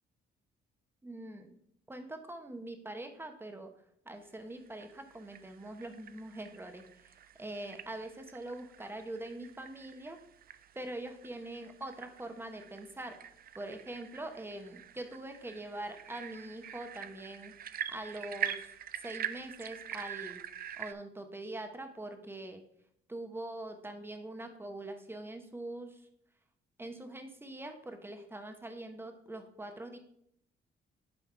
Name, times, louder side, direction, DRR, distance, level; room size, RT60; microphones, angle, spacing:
voice 1, 1.0-1.6 1.9-3.7 4.0-10.2 10.7-13.2 13.5-17.5 17.9-20.4 20.8-22.6 23.1-26.1 26.8-30.0, right 1 dB, 10° right, 6 dB, 1.0 m, -43 dB
sound 1, 4.5-20.9, right 9 dB, 50° right, 0.4 m, -45 dB
8.7 x 3.5 x 4.7 m, 0.71 s
cardioid pair, 90°, 20 cm